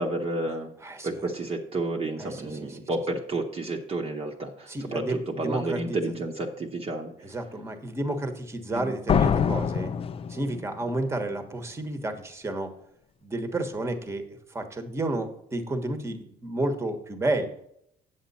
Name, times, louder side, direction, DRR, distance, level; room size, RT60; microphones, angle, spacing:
voice 1, 0.0-0.7 1.0-7.1 8.7-8.9, right 2 dB, 35° right, 0 dB, 1.1 m, -31 dB
voice 2, 0.8-1.2 2.2-2.8 4.7-6.0 7.2-9.9 10.3-12.7 13.2-17.5, right 1 dB, 15° right, 6 dB, 1.3 m, -31 dB
sound 1, 9.1-10.9, left 7 dB, 35° left, 0.5 m, -25 dB
8.3 x 7.4 x 4.2 m, 0.71 s
cardioid pair, 110°, 17 cm